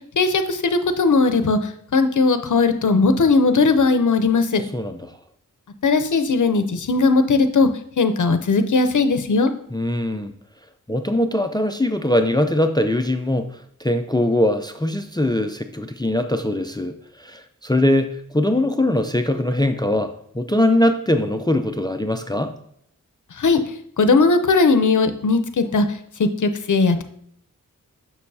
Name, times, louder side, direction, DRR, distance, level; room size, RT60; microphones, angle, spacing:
voice 1, 0.2-1.6 1.9-4.6 5.8-7.7 8.0-9.5 23.4-23.6 24.0-25.9 26.2-27.0, left 4 dB, 60° left, 9 dB, 0.7 m, -18 dB
voice 2, 4.7-5.1 9.7-10.3 10.9-22.5, left 1 dB, 15° left, 8 dB, 0.4 m, -21 dB
6.6 x 6.1 x 2.7 m, 0.68 s
wide cardioid pair, 60°, 34 cm